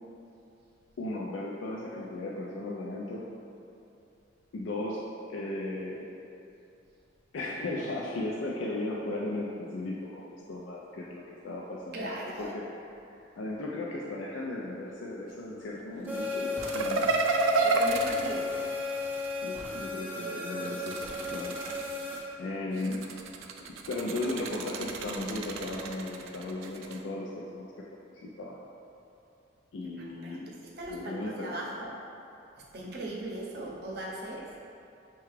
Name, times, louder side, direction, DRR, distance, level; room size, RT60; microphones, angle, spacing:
voice 1, 1.0-3.3 4.5-6.1 7.3-12.6 13.4-17.1 19.4-21.6 22.4-23.2 23.7-27.7 28.1-28.6 29.7-30.5 30.9-31.7, left 2 dB, 80° left, -4 dB, 0.4 m, -36 dB
voice 2, 11.9-12.5 17.6-18.5 30.2-30.4 30.8-31.9 32.7-34.4, right 1 dB, 55° right, -3 dB, 0.6 m, -38 dB
sound 1, 16.1-22.2, left 3 dB, 10° right, 0.4 m, -34 dB
sound 2, 16.6-19.4 20.6-22.2 22.7-27.0, right 3 dB, 90° right, 0.3 m, -31 dB
5.7 x 2.3 x 3.1 m, 2.7 s
head